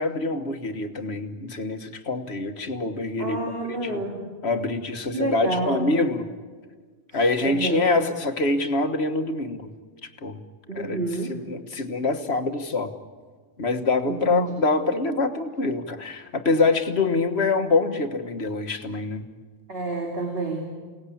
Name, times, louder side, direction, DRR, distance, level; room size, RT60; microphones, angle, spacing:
voice 1, 0.0-3.4 3.7-3.9 4.4-6.3 7.1-9.7 10.2-10.4 10.8-11.0 11.4-12.9 13.6-19.2, left 3 dB, 70° left, 7 dB, 1.7 m, -25 dB
voice 2, 3.2-4.2 5.1-5.9 7.1-7.9 10.7-11.4 14.0-14.5 19.7-20.7, right 2 dB, 60° right, 0 dB, 3.0 m, -29 dB
29.0 x 18.5 x 8.6 m, 1.5 s
omnidirectional pair, 1.1 m